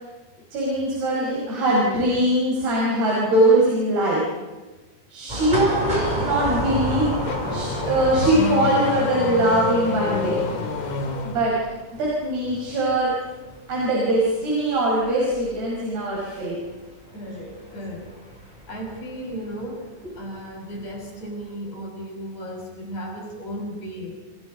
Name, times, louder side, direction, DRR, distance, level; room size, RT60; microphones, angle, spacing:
voice 1, 0.5-4.2 5.1-7.1 7.5-10.3 11.3-11.5 12.0-13.1 13.7-16.6, right 1 dB, 80° right, -5 dB, 8.0 m, -21 dB
sound 1, 5.3-19.3 19.6-19.7 20.7-21.1 21.4-21.5, right 1 dB, 10° right, 6.2 m, -32 dB
Car / Accelerating revving vroom, 6.6-11.5, left 5 dB, 75° left, 4.8 m, -28 dB
voice 2, 17.1-18.1 18.7-24.2, equal, 45° left, -1 dB, 7.8 m, -35 dB
29.5 x 29.5 x 5.4 m, 1.2 s
omnidirectional pair, 4.5 m